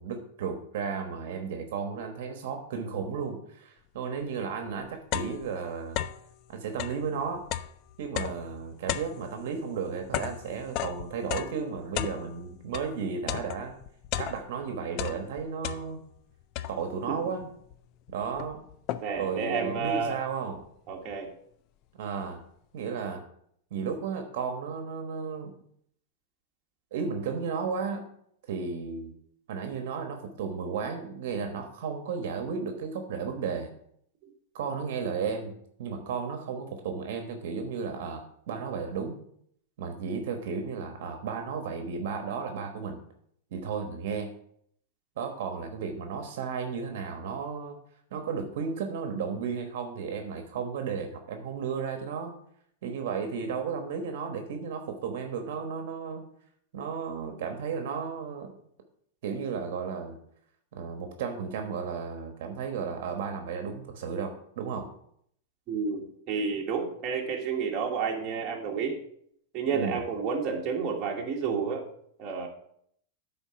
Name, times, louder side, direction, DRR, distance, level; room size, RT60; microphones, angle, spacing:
voice 1, 0.0-6.0 6.5-7.4 8.0-13.7 14.2-16.0 16.7-17.4 18.1-18.7 19.2-20.7 21.9-22.4 22.7-23.3 23.7-25.5 26.9-28.1 28.5-29.1 29.5-33.7 34.5-39.2 39.8-43.0 43.5-44.3 45.2-47.8 48.1-52.3 52.8-56.2 56.7-58.5 59.2-60.2 60.7-64.9 69.7-70.0, right 6 dB, 60° right, 5 dB, 1.2 m, -34 dB
sound 1, 4.2-4.3 4.7-6.3 6.7-12.9 13.3-14.6 14.9-16.2 16.6-17.1 17.7-17.8 18.1-19.3, left 12 dB, 35° left, 0.3 m, -35 dB
voice 2, 19.0-20.2 20.9-21.3 65.7-69.0 69.5-71.9 72.2-72.5, right 5 dB, 30° right, -1 dB, 1.4 m, -30 dB
9.7 x 4.1 x 5.7 m, 0.68 s
supercardioid pair, 160°, 0 cm